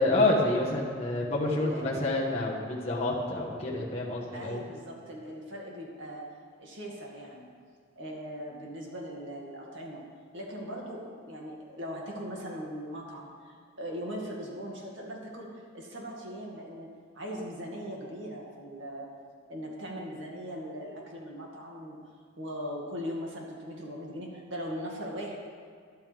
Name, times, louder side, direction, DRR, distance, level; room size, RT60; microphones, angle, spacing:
voice 1, 0.0-4.6, left 2 dB, 30° left, -5 dB, 1.3 m, -28 dB
voice 2, 1.5-2.0 4.3-6.3 6.6-7.5 8.0-10.0 10.3-16.9 17.1-19.1 19.5-22.0 22.4-25.4, equal, 65° right, -2 dB, 2.2 m, -39 dB
13.0 x 12.0 x 3.5 m, 2.1 s
head